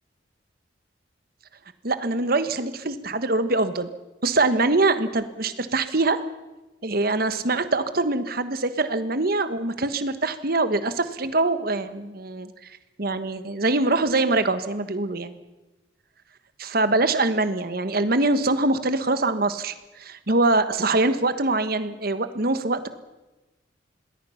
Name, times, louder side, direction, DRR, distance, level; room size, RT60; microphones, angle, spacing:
voice 1, 1.8-3.9 4.2-6.2 6.8-12.7 13.0-15.4 16.6-22.9, right 2 dB, 50° right, 11 dB, 1.3 m, -23 dB
27.0 x 20.0 x 5.8 m, 1.1 s
head